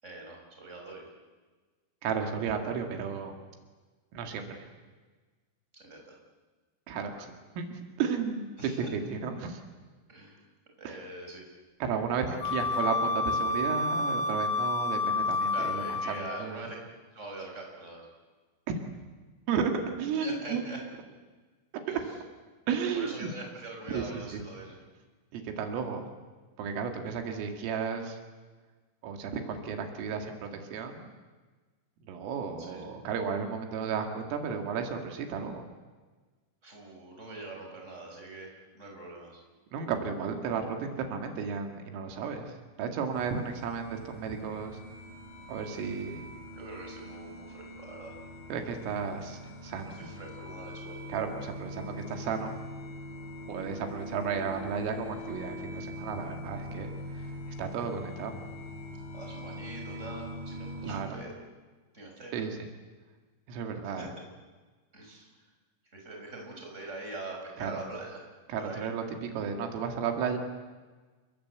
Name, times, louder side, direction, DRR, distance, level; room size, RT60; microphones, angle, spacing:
voice 1, 0.0-1.1 5.7-6.1 8.6-9.0 10.1-10.4 10.8-11.4 12.3-12.6 15.5-16.8 17.1-18.1 20.2-20.8 21.9-22.2 22.9-24.8 32.6-32.9 36.6-39.4 46.5-48.1 49.9-51.0 59.1-61.3 61.9-62.4 63.8-64.1 64.9-65.3 65.9-68.2 68.6-68.9, right 2 dB, 15° right, 0 dB, 6.3 m, -43 dB
voice 2, 2.0-3.3 4.1-4.6 6.9-9.6 10.9-11.0 11.8-16.7 19.5-19.7 20.0-20.6 22.7-23.3 23.9-24.1 24.3-24.4 25.3-26.1 26.6-28.2 29.0-31.1 32.1-35.6 39.7-42.5 42.8-44.8 45.5-46.3 48.5-50.1 51.1-52.5 53.5-56.9 57.1-57.3 57.6-58.4 60.8-61.2 62.3-62.6 63.5-64.1 67.6-67.8 68.5-70.4, right 6 dB, 85° right, 4 dB, 4.8 m, -33 dB
Wind instrument woodwind instrument, 12.4-16.5, left 3 dB, 60° left, 3.0 m, -29 dB
sound 1, 43.1-61.1, left 1 dB, 40° left, 5.9 m, -43 dB
29.0 x 22.5 x 8.3 m, 1.3 s
omnidirectional pair, 5.8 m